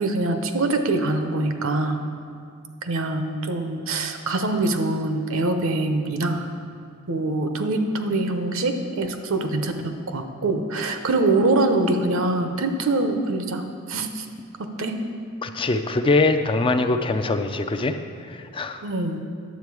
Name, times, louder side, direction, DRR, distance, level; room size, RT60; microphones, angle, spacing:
voice 1, 0.0-2.0 2.8-6.5 7.1-14.2 14.6-14.9 18.8-19.3, right 2 dB, 70° right, 7 dB, 0.8 m, -24 dB
voice 2, 15.4-18.0 18.3-18.8, left 3 dB, 25° left, 7 dB, 0.4 m, -22 dB
10.5 x 7.6 x 4.8 m, 2.2 s
head